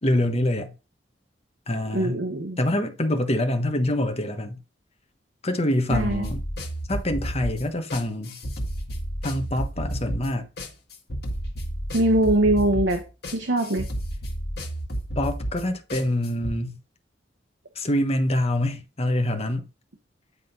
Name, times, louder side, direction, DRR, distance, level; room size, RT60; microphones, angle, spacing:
voice 1, 0.0-0.7 1.7-2.2 2.6-4.6 5.4-6.4 6.9-8.4 9.2-10.5 15.2-16.8 17.8-19.7, left 1 dB, 35° left, 1.2 m, -25 dB
voice 2, 1.9-2.6 5.9-6.3 11.9-13.9, right 1 dB, 75° right, 1.2 m, -22 dB
sound 1, 5.9-16.6, equal, 60° left, 2.1 m, -31 dB
9.8 x 3.9 x 5.4 m
head